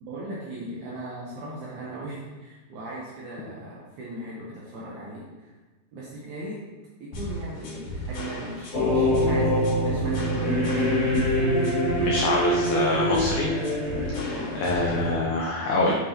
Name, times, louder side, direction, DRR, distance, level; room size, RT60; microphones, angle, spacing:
voice 1, 0.0-5.5 5.9-6.7 7.0-11.4 14.3-14.8, right 1 dB, 75° right, -5 dB, 1.8 m, -38 dB
sound 1, 7.1-15.1, equal, 60° left, 2.0 m, -35 dB
sound 2, 8.7-15.2, equal, 40° left, 1.3 m, -24 dB
voice 2, 12.0-13.5 14.2-15.9, left 2 dB, 90° left, -2 dB, 1.7 m, -25 dB
7.4 x 5.2 x 2.8 m, 1.2 s
omnidirectional pair, 4.5 m